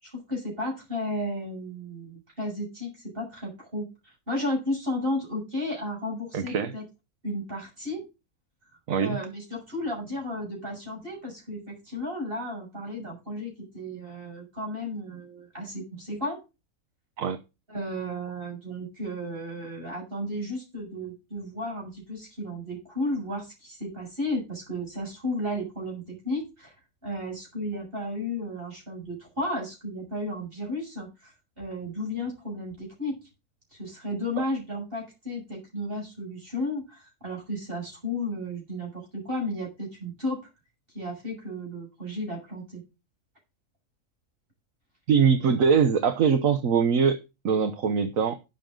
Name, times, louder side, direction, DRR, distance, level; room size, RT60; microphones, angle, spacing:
voice 1, 0.0-6.8 7.2-8.0 9.0-16.4 17.7-26.7 27.0-33.2 33.7-40.4 40.9-42.8, left 1 dB, 40° right, 7.2 m, -33 dB
voice 2, 6.3-6.7 8.9-9.2 17.2-17.4 34.4-34.5 45.1-48.4, right 6 dB, 70° right, 1.3 m, -23 dB
12.0 x 9.8 x 3.8 m
omnidirectional pair, 1.5 m